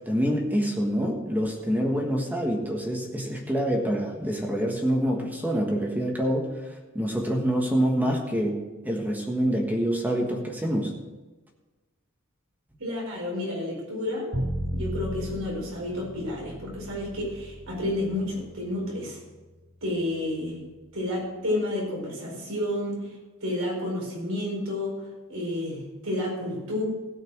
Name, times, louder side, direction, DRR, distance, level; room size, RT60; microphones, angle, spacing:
voice 1, 0.1-8.5 8.8-10.9, equal, 10° right, 0 dB, 1.4 m, -26 dB
voice 2, 12.8-19.2 19.8-20.6 20.9-23.1 23.4-26.8, left 1 dB, 90° right, -2 dB, 4.6 m, -31 dB
Bowed string instrument, 14.3-20.4, equal, 70° right, 2.7 m, -36 dB
16.5 x 5.8 x 6.2 m, 1.2 s
head